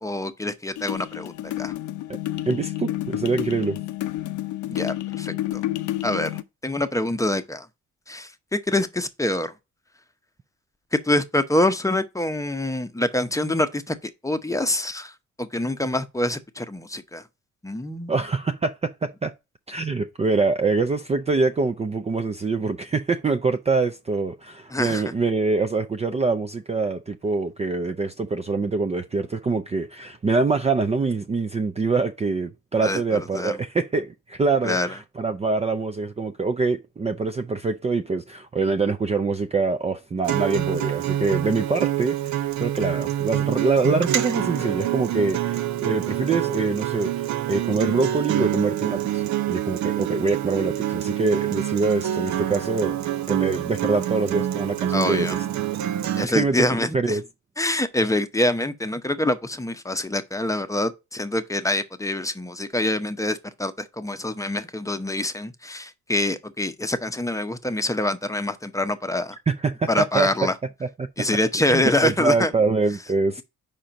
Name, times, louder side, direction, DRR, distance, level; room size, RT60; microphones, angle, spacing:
voice 1, 0.0-1.7 4.7-5.6 6.0-7.7 8.1-9.5 10.9-17.2 17.6-18.1 24.7-25.0 32.8-33.6 34.6-34.9 54.9-55.4 56.2-57.2 57.6-69.4 69.9-70.5 71.2-72.5, left 1 dB, 10° left, 0.8 m, -25 dB
sound 1, 0.8-6.4, left 15 dB, 80° left, 0.6 m, -30 dB
voice 2, 2.5-3.8 18.1-19.3 19.7-53.0 53.3-55.4 56.4-56.7 56.9-57.2 69.5-70.3 70.8-71.1 71.7-73.4, right 3 dB, 20° right, 0.5 m, -24 dB
Acoustic guitar, 40.2-56.3, right 12 dB, 70° right, 0.7 m, -26 dB
5.1 x 4.3 x 5.1 m
cardioid pair, 90°, 30 cm